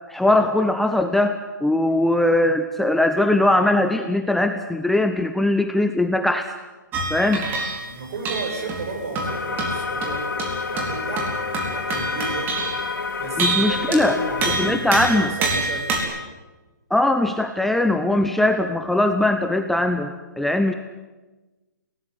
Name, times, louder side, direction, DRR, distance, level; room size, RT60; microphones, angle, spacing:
voice 1, 0.1-6.5 7.1-7.4 13.4-14.2 14.6-15.3 16.9-20.7, left 1 dB, ahead, 6 dB, 0.8 m, -20 dB
sound 1, 6.9-7.9 8.2-12.9 13.4-14.1 14.4-16.0, right 3 dB, 20° right, 4.2 m, -27 dB
voice 2, 7.8-10.4 10.7-16.2, right 3 dB, 50° right, 3 dB, 7.8 m, -33 dB
sound 2, 9.2-14.8, left 4 dB, 90° left, 2.6 m, -29 dB
22.0 x 18.5 x 9.8 m, 1.2 s
hypercardioid pair, 150°, 10 cm